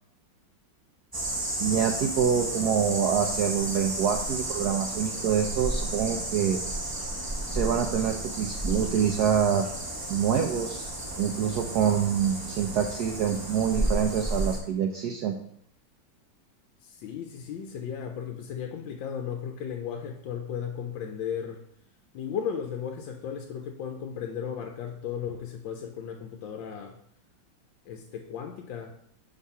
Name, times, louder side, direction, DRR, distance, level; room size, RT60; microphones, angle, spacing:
sound 1, 1.1-14.6, right 1 dB, 15° right, 0.8 m, -32 dB
voice 1, 1.6-6.6 7.5-9.7 10.1-10.9 11.2-15.3, right 8 dB, 70° right, 4 dB, 1.0 m, -26 dB
voice 2, 16.8-21.6 22.1-27.0 27.9-28.9, left 8 dB, 85° left, 4 dB, 1.3 m, -35 dB
5.9 x 3.7 x 5.5 m, 0.68 s
omnidirectional pair, 2.1 m